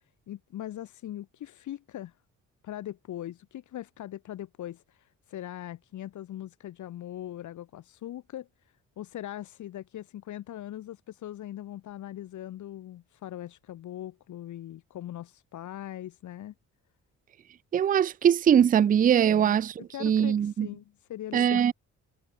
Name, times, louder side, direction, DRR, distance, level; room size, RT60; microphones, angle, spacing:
voice 1, 0.3-2.1 2.6-8.5 9.0-16.5 19.3-20.8 21.1-21.6, left 12 dB, 75° left, 3.9 m, -40 dB
voice 2, 17.7-19.7 20.0-20.7 21.3-21.7, right 9 dB, 30° right, 0.4 m, -22 dB
cardioid pair, 90°, 30 cm